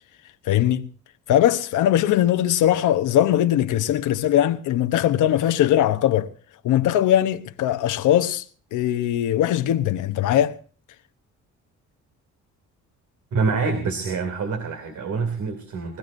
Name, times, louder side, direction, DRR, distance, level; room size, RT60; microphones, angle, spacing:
voice 1, 0.4-0.9 1.3-6.3 6.6-8.4 8.7-10.6, left 12 dB, 80° left, 1.0 m, -20 dB
voice 2, 13.3-16.0, right 4 dB, 75° right, 2.9 m, -26 dB
23.5 x 15.5 x 2.7 m
cardioid pair, 90°, 30 cm